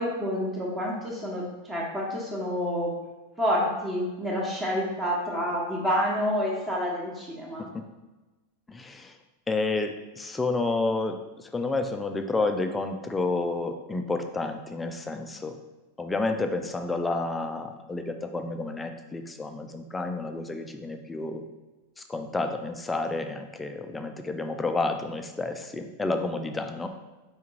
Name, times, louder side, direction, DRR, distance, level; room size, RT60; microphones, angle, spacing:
voice 1, 0.0-3.0 3.4-7.7, equal, 10° right, -3 dB, 1.1 m, -28 dB
voice 2, 8.7-9.2 9.5-15.6 16.0-21.4 22.0-26.9, left 3 dB, 10° left, 6 dB, 0.4 m, -30 dB
4.6 x 3.5 x 3.0 m, 1.2 s
figure-of-eight pair, 90°, 0 cm